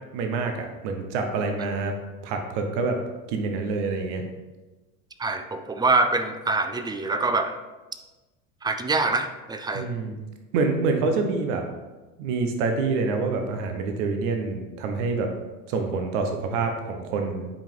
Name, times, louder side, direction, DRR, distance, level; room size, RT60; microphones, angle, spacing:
voice 1, 0.1-1.9 2.2-3.0 3.3-4.2 9.7-10.2 10.5-11.6 12.2-15.3 15.7-17.5, right 4 dB, 60° right, 5 dB, 1.2 m, -26 dB
voice 2, 5.2-7.6 8.6-9.9, right 3 dB, 10° right, 9 dB, 0.6 m, -25 dB
8.9 x 5.1 x 3.7 m, 1.2 s
hypercardioid pair, 80°, 41 cm